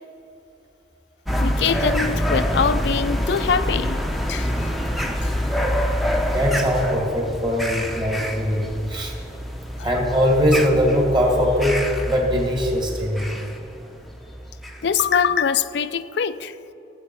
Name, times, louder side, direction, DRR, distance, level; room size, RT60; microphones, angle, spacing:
sound 1, 1.2-15.0, equal, ahead, 0.7 m, -26 dB
voice 1, 1.4-4.0 4.3-4.5 14.8-16.5, left 6 dB, 65° left, 13 dB, 0.4 m, -23 dB
voice 2, 6.3-9.1 9.8-13.3, equal, 25° right, -1 dB, 2.2 m, -21 dB
17.0 x 7.7 x 4.7 m, 2.8 s
head